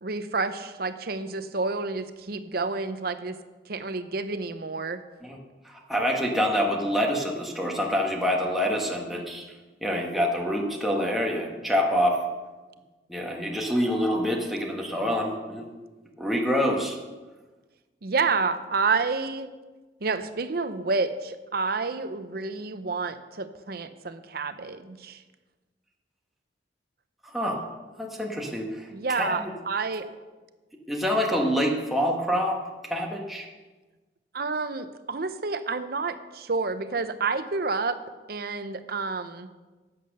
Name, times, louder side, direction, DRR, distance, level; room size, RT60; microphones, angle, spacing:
voice 1, 0.0-3.4 3.7-5.0 18.0-19.5 20.0-25.2 28.9-30.1 34.3-38.0 38.3-39.5, right 4 dB, 55° right, 11 dB, 0.8 m, -29 dB
voice 2, 5.6-9.4 9.8-12.2 13.1-15.7 16.2-17.0 27.3-27.6 28.0-29.4 30.9-32.6 32.9-33.4, equal, ahead, -1 dB, 1.4 m, -26 dB
11.0 x 8.6 x 6.5 m, 1.2 s
head